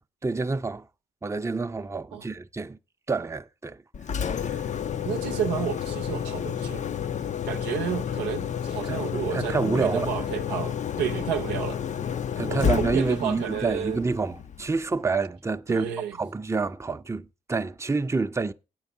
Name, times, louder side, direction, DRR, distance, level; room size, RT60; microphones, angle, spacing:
voice 1, 0.2-0.9 1.2-2.8 3.1-3.8 4.2-4.6 8.8-9.0 9.3-10.1 12.4-18.5, right 4 dB, 15° right, 0.6 m, -28 dB
Engine, 3.9-14.9, left 8 dB, 45° left, 0.5 m, -30 dB
voice 2, 5.0-6.9 7.5-11.8 12.5-14.0 15.7-16.2, right 9 dB, 85° right, 0.6 m, -31 dB
9.0 x 4.6 x 7.0 m
hypercardioid pair, 40°, 17 cm